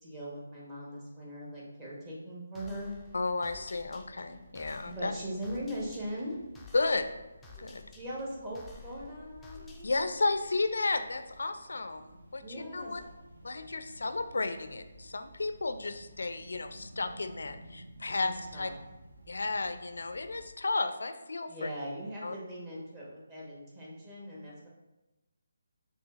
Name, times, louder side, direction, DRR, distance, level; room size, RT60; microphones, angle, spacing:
voice 1, 0.0-2.9 4.8-6.4 8.0-9.9 12.4-12.9 18.5-18.7 21.5-24.7, equal, 20° right, -5 dB, 1.1 m, -40 dB
sound 1, 2.5-10.4, left 4 dB, 5° left, 0.4 m, -54 dB
sound 2, 2.6-20.5, right 1 dB, 65° right, 0.7 m, -54 dB
voice 2, 3.1-5.1 6.7-7.1 7.6-7.8 9.8-12.0 12.3-12.4 12.7-13.0 13.4-18.7 19.3-21.7 22.2-22.4, left 3 dB, 75° left, 9 dB, 0.3 m, -33 dB
6.3 x 2.8 x 2.4 m, 1.0 s
figure-of-eight pair, 155°, 0 cm